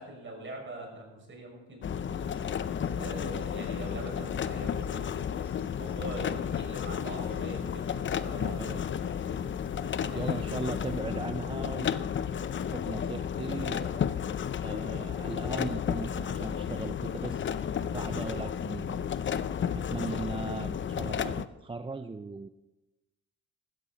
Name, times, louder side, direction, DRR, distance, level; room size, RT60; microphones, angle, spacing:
voice 1, 0.0-2.4 2.9-5.3 5.7-8.0 8.2-9.1 10.0-10.7, right 2 dB, 40° right, 1 dB, 6.0 m, -43 dB
sound 1, 1.8-21.5, left 8 dB, 40° left, 0.6 m, -32 dB
sound 2, 2.1-11.0, left 5 dB, 60° left, 5.2 m, -62 dB
voice 2, 8.4-8.8 10.1-12.0 12.7-14.0 14.6-17.5 17.9-19.1 19.7-22.5, right 3 dB, 15° right, 9 dB, 0.5 m, -38 dB
15.5 x 13.0 x 4.1 m, 1.1 s
cardioid pair, 90°, 30 cm